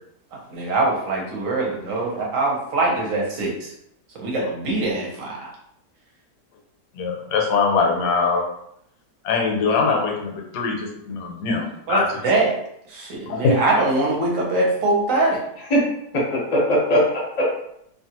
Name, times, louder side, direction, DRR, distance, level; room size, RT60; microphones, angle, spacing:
voice 1, 0.5-3.7 4.2-5.5 11.9-12.5 12.9-15.4, right 2 dB, 60° right, -2 dB, 1.1 m, -22 dB
voice 2, 6.9-8.5 9.2-12.2 13.3-13.6, left 4 dB, 75° left, 1 dB, 1.2 m, -22 dB
voice 3, 16.1-17.4, equal, 40° left, -4 dB, 0.6 m, -20 dB
2.8 x 2.3 x 2.9 m, 0.74 s
omnidirectional pair, 1.8 m